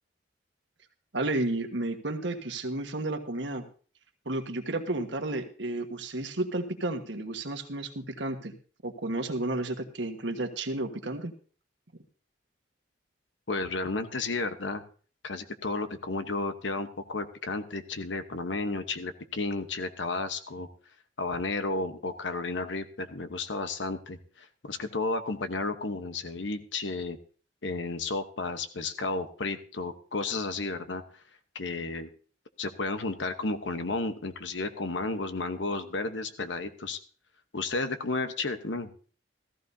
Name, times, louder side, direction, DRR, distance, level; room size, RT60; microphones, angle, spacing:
voice 1, 1.1-3.6 4.2-8.5 8.8-11.3, right 2 dB, 75° right, 6 dB, 1.4 m, -32 dB
voice 2, 13.5-14.8 15.2-20.7 21.2-27.2 27.6-31.0 31.5-32.1 32.6-37.0 37.5-38.9, left 3 dB, 80° left, 9 dB, 1.1 m, -32 dB
15.5 x 14.5 x 2.7 m, 0.41 s
head